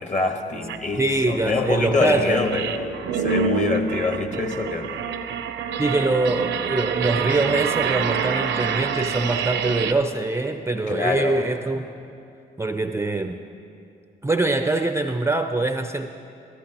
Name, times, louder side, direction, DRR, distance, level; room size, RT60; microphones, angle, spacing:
voice 1, 0.0-5.0 10.9-11.4, left 3 dB, 35° left, 5 dB, 1.3 m, -25 dB
sound 1, 0.7-0.8 1.2-9.9, right 6 dB, 65° right, 0.6 m, -27 dB
voice 2, 1.0-2.5 5.8-11.9 12.6-13.4 14.2-16.1, right 2 dB, 15° right, 7 dB, 0.5 m, -23 dB
14.5 x 13.5 x 2.9 m, 2.6 s
supercardioid pair, 60°, 20 cm